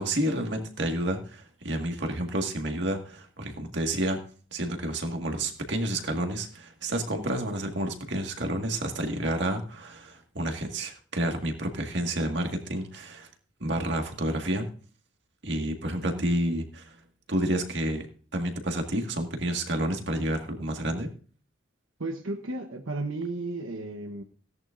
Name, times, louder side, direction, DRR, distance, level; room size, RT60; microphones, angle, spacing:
voice 1, 0.0-4.2 4.5-13.3 13.6-14.7 15.4-17.0 17.3-21.1, right 1 dB, 60° right, 4 dB, 1.9 m, -30 dB
voice 2, 22.0-24.2, right 2 dB, 85° right, 4 dB, 1.1 m, -34 dB
17.0 x 10.5 x 2.6 m, 0.42 s
head